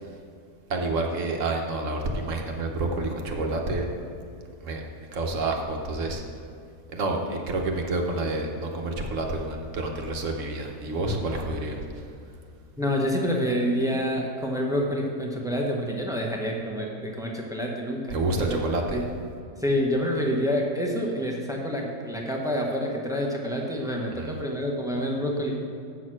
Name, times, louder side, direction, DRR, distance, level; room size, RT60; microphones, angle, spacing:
voice 1, 0.7-3.9 4.6-4.8 5.1-6.2 6.9-11.8 18.1-19.0 24.1-24.3, right 2 dB, 55° right, 2 dB, 1.2 m, -28 dB
voice 2, 12.8-18.6 18.9-19.0 19.6-25.5, equal, 5° right, 0 dB, 0.8 m, -27 dB
7.9 x 6.4 x 6.3 m, 2.4 s
omnidirectional pair, 1.7 m